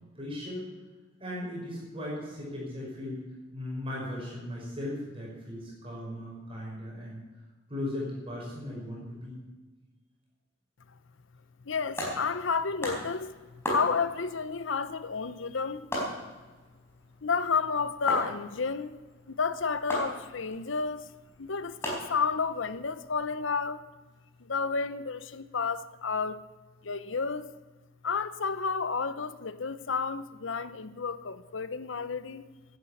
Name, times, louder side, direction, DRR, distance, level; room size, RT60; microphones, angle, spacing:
voice 1, 0.2-0.8 1.2-3.2 3.5-7.2 7.7-9.4, left 1 dB, 30° right, 5.6 m, -37 dB
voice 2, 11.7-15.9 17.2-18.9 19.3-21.1 21.4-23.8 24.4-26.4 26.8-27.5 28.0-32.4, left 5 dB, 80° left, 0.8 m, -31 dB
sound 1, 11.8-23.3, equal, 15° left, 4.5 m, -39 dB
11.0 x 11.0 x 8.5 m
head